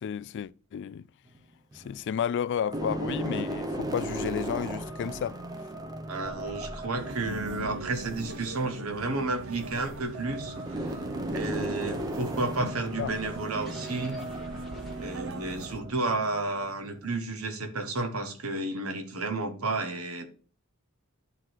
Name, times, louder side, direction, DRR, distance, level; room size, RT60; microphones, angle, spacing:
voice 1, 0.0-1.1 1.7-5.4 12.6-12.7 13.0-13.1, left 8 dB, 55° left, 0.3 m, -32 dB
sound 1, 1.3-2.1 2.6-17.2, right 1 dB, 20° right, 0.7 m, -37 dB
voice 2, 6.1-11.0 11.3-14.2 15.0-20.3, right 2 dB, 85° right, 1.4 m, -32 dB
sound 2, 6.2-15.7, equal, ahead, 1.3 m, -51 dB
sound 3, 7.0-15.8, right 2 dB, 60° right, 0.6 m, -40 dB
11.0 x 3.9 x 4.6 m
head